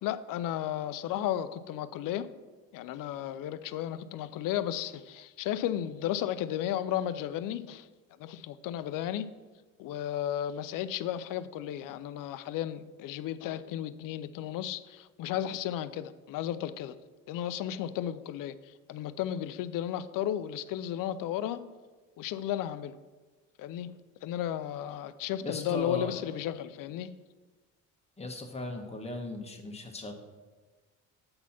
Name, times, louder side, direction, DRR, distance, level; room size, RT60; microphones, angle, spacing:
voice 1, 0.0-2.3 2.7-7.9 8.2-9.3 9.8-16.9 17.3-21.6 22.2-23.0 23.6-23.9 24.2-27.1, left 11 dB, 60° left, 14 dB, 0.5 m, -34 dB
voice 2, 25.4-26.2 28.2-30.1, left 2 dB, 15° left, 2 dB, 1.3 m, -38 dB
7.7 x 4.0 x 5.7 m, 1.3 s
hypercardioid pair, 60°, 37 cm